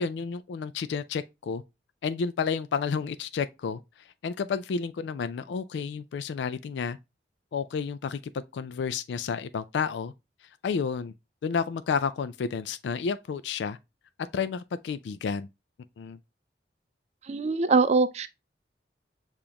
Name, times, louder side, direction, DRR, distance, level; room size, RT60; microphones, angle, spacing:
voice 1, 0.0-1.6 2.0-3.8 4.2-7.0 7.5-10.1 10.6-11.1 11.4-13.8 14.3-15.5 16.0-16.2, left 6 dB, 80° left, 0.3 m, -31 dB
voice 2, 17.3-18.3, right 4 dB, 40° right, 0.4 m, -23 dB
6.8 x 2.5 x 2.7 m
head